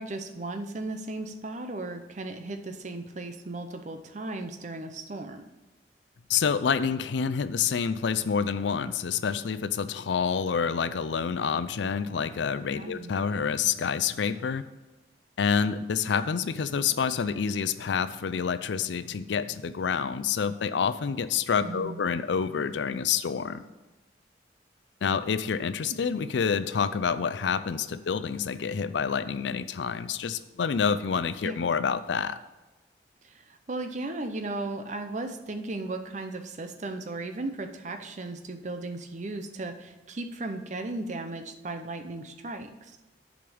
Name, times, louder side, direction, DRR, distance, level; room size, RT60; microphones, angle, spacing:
voice 1, 0.0-5.4 12.8-13.1 21.6-22.0 31.4-31.5 33.2-43.0, right 2 dB, 40° right, 7 dB, 0.6 m, -36 dB
voice 2, 6.3-14.7 15.4-23.6 25.0-32.4, left 6 dB, 75° left, 14 dB, 0.4 m, -28 dB
6.9 x 5.1 x 6.9 m, 1.1 s
head